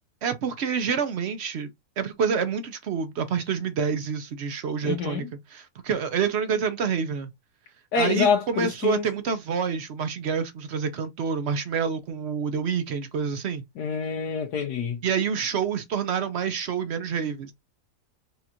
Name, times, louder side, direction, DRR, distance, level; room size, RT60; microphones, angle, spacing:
voice 1, 0.2-5.3 5.5-7.3 8.0-13.6 15.0-17.5, right 6 dB, 60° right, 0.7 m, -27 dB
voice 2, 4.8-5.3 7.9-9.1 13.8-15.0, left 6 dB, 85° left, 1.3 m, -26 dB
4.2 x 2.4 x 2.8 m
omnidirectional pair, 1.6 m